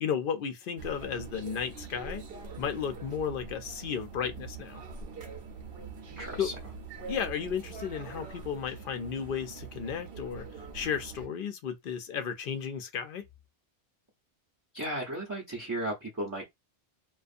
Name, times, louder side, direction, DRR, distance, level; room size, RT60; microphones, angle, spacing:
voice 1, 0.0-2.2 2.6-4.8 6.4-6.5 7.1-10.4 10.7-13.2, left 7 dB, 60° left, 0.7 m, -34 dB
sound 1, 0.8-11.3, right 5 dB, 60° right, 0.8 m, -44 dB
voice 2, 6.1-6.5 14.7-16.5, right 1 dB, 20° right, 0.6 m, -35 dB
2.5 x 2.3 x 2.5 m
omnidirectional pair, 1.2 m